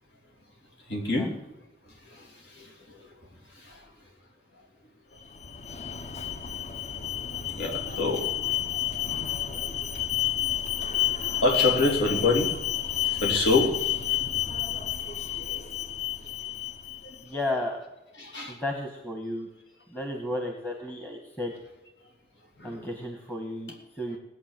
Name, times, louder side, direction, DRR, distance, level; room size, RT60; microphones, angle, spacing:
voice 1, 0.9-1.3 1.8-3.1 3.5-3.9 5.1-5.2 7.5-8.3 9.5-9.6 9.9-10.0 11.4-12.7 12.9-13.8 14.1-14.2 14.7-14.8 17.0-17.2 18.2-18.6 22.6-22.9, left 2 dB, 75° left, 0 dB, 3.2 m, -27 dB
Alarm, 5.2-17.2, left 11 dB, 40° left, 0.9 m, -30 dB
voice 2, 17.2-17.8 18.5-19.5 19.9-21.5 22.6-24.2, left 1 dB, 10° left, 2 dB, 1.3 m, -33 dB
18.0 x 8.0 x 7.5 m, 0.98 s
head